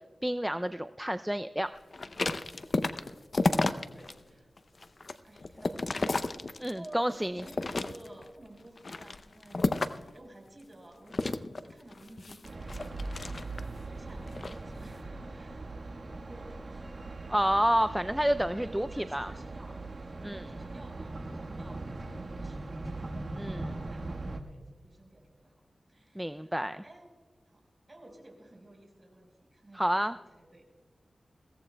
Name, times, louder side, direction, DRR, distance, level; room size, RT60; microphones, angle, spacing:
voice 1, 0.2-1.7 6.6-7.3 17.3-19.3 20.2-20.5 23.4-23.7 26.2-26.8 29.7-30.2, equal, 5° right, 10 dB, 0.3 m, -29 dB
sound 1, 1.9-4.1 4.6-6.9 7.4-8.3 8.8-10.1 11.1-13.8 14.3-14.6, left 3 dB, 55° left, 0.6 m, -32 dB
voice 2, 3.9-4.5 5.2-6.2 6.6-15.7 16.0-17.0 18.1-23.1 23.4-25.6 25.9-26.5 26.8-27.1 27.5-30.1 30.4-30.6, right 1 dB, 30° right, 1 dB, 4.5 m, -53 dB
sound 2, 12.4-24.4, right 2 dB, 60° right, 1.3 m, -40 dB
22.0 x 16.5 x 2.2 m, 1.4 s
wide cardioid pair, 75°, 0 cm